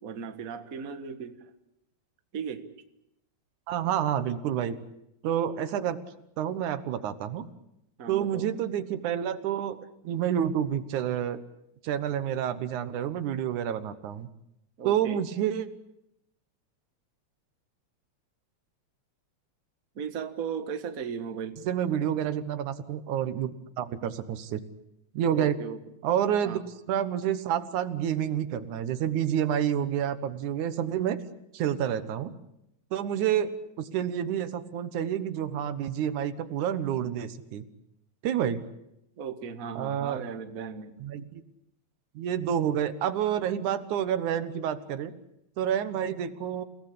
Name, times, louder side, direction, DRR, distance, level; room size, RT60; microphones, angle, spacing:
voice 1, 0.0-1.5 2.3-2.7 8.0-8.5 14.8-15.2 19.9-21.6 25.3-25.8 26.4-26.6 39.2-41.0, right 7 dB, 40° right, 9 dB, 1.4 m, -36 dB
voice 2, 3.7-4.8 5.2-6.0 6.4-7.5 8.1-11.4 11.8-14.3 14.8-15.7 21.6-23.5 23.8-24.6 25.1-25.6 26.0-26.6 26.9-31.2 31.5-32.3 32.9-37.6 38.2-38.7 39.8-40.2 41.0-41.4 42.2-45.1 45.6-46.6, right 9 dB, 80° right, 13 dB, 2.7 m, -29 dB
29.0 x 18.0 x 8.5 m, 0.81 s
omnidirectional pair, 3.4 m